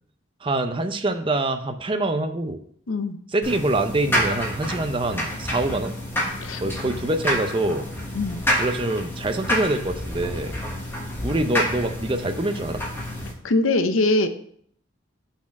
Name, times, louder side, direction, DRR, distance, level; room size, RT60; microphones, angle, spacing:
voice 1, 0.4-2.6 3.3-5.9 6.6-7.9 8.6-10.5 11.2-12.8, right 2 dB, 25° right, 7 dB, 0.5 m, -25 dB
sound 1, 3.4-13.3, equal, 10° left, 1.3 m, -28 dB
voice 2, 13.4-14.3, left 2 dB, 85° left, 9 dB, 0.7 m, -22 dB
5.9 x 4.2 x 6.3 m, 0.64 s
head